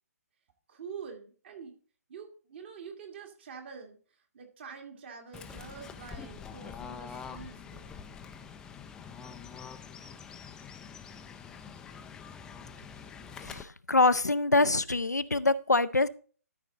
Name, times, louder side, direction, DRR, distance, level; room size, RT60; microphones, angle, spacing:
voice 1, 0.7-1.8 2.1-4.0 4.3-7.9, right 6 dB, 40° right, 1.9 m, -46 dB
Fowl / Bird, 5.3-13.6, left 6 dB, 10° left, 0.4 m, -45 dB
voice 2, 13.4-16.1, left 3 dB, 85° left, 0.5 m, -25 dB
13.0 x 5.2 x 3.8 m
figure-of-eight pair, 135°, 9 cm